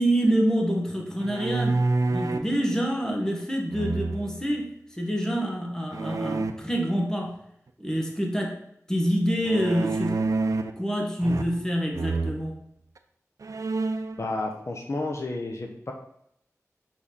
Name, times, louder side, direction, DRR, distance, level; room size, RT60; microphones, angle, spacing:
voice 1, 0.0-1.8 2.1-7.4 7.8-8.6 8.9-10.2 10.8-12.5, equal, 10° left, 0 dB, 1.7 m, -26 dB
sound 1, 1.2-2.5 3.7-4.4 5.9-6.5 9.4-10.8 11.2-11.7 11.9-12.4 13.0-13.1 13.4-14.2, right 3 dB, 80° right, 0.6 m, -28 dB
voice 2, 14.2-15.9, left 2 dB, 55° left, 2 dB, 1.0 m, -31 dB
6.2 x 6.1 x 4.1 m, 0.73 s
wide cardioid pair, 80°, 6 cm